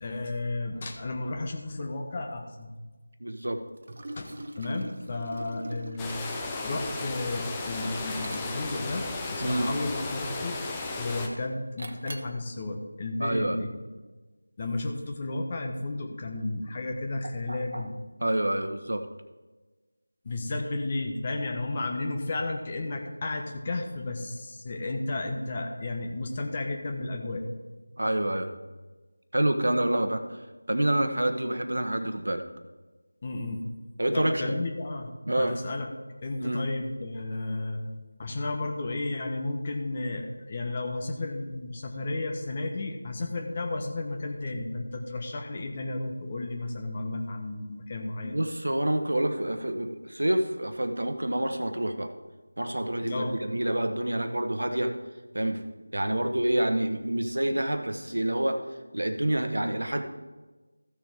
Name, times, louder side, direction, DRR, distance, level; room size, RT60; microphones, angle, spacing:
voice 1, 0.0-2.7 4.2-6.1 6.6-10.6 11.0-13.8 14.6-17.9 20.2-27.4 33.2-33.7 34.1-35.1 35.4-35.9 36.2-37.8 38.2-48.4 53.0-53.4, left 2 dB, 25° left, 3 dB, 1.1 m, -33 dB
voice 2, 3.2-3.6 9.4-9.7 13.2-13.6 17.5-17.8 18.2-19.1 28.0-28.5 29.3-30.2 30.7-32.4 34.0-34.5 35.3-35.5 36.4-36.6 48.2-52.1 52.6-54.9 55.3-55.6 55.9-58.6 58.9-60.0, right 1 dB, 70° right, 7 dB, 1.2 m, -27 dB
Liquid, 3.8-8.8 9.3-10.0 10.6-11.1 11.8-12.4, right 1 dB, 45° right, 0.9 m, -44 dB
sound 1, 6.0-11.3, left 3 dB, 10° left, 0.7 m, -34 dB
14.5 x 6.6 x 3.7 m, 1.2 s
figure-of-eight pair, 170°, 0 cm